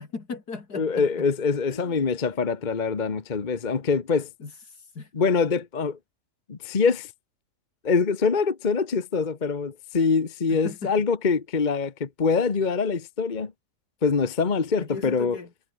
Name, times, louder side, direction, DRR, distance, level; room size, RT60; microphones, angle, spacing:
voice 1, 0.0-1.3 1.7-2.0 4.4-5.1 10.5-11.0 14.8-15.5, left 4 dB, 70° left, 3.4 m, -38 dB
voice 2, 0.7-4.3 5.1-6.0 6.5-7.1 7.8-13.5 14.0-15.4, left 5 dB, 30° left, 1.2 m, -24 dB
omnidirectional pair, 1.7 m